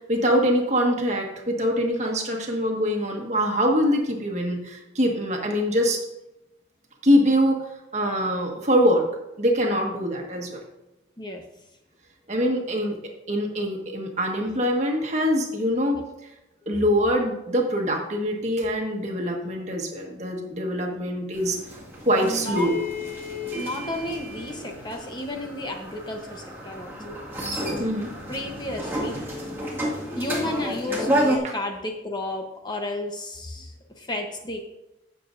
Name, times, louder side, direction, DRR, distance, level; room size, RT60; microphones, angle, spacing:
voice 1, 0.1-6.0 7.0-7.6 7.9-9.1 9.4-10.6 12.3-12.9 13.3-16.0 16.7-21.6 22.0-22.7 27.8-28.1 31.4-31.5, equal, 40° right, 1 dB, 1.5 m, -23 dB
sound 1, 21.3-31.4, equal, 10° right, 1.9 m, -30 dB
voice 2, 22.2-22.7 23.6-27.0 28.3-29.2 30.1-34.6, left 2 dB, 25° left, 3 dB, 0.9 m, -32 dB
16.0 x 7.0 x 2.6 m, 0.94 s
head